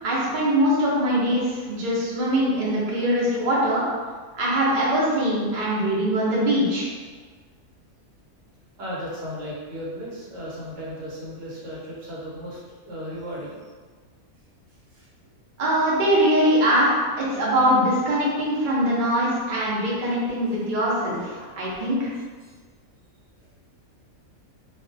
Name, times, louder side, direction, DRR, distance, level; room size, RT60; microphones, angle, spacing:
voice 1, 0.0-3.8 4.4-6.9 15.6-22.1, equal, 50° right, -6 dB, 0.6 m, -22 dB
voice 2, 8.8-12.6 12.8-13.6 14.9-15.0 22.4-22.5, equal, 65° right, -6 dB, 1.0 m, -35 dB
2.5 x 2.2 x 2.5 m, 1.5 s
omnidirectional pair, 1.5 m